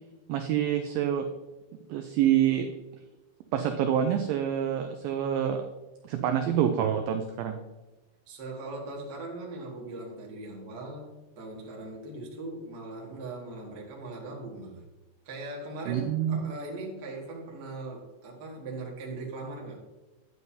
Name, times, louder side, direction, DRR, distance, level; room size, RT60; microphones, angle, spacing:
voice 1, 0.3-1.3 1.9-2.7 3.5-5.6 6.0-7.6 15.9-16.4, right 9 dB, 90° right, 6 dB, 2.0 m, -26 dB
voice 2, 8.3-14.8 15.2-19.8, right 2 dB, 55° right, -2 dB, 1.1 m, -40 dB
9.5 x 9.2 x 2.8 m, 1.1 s
omnidirectional pair, 4.8 m